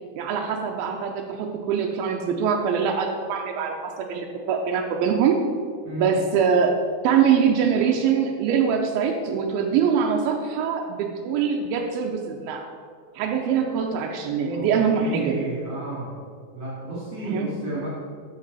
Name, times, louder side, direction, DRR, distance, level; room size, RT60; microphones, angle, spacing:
voice 1, 0.2-5.4 6.0-6.8 7.0-12.7 13.2-15.4 17.2-17.6, right 7 dB, 85° right, 2 dB, 2.1 m, -23 dB
voice 2, 14.5-16.2 16.5-17.9, right 1 dB, 45° right, -9 dB, 3.0 m, -32 dB
13.0 x 6.1 x 4.0 m, 2.1 s
omnidirectional pair, 5.0 m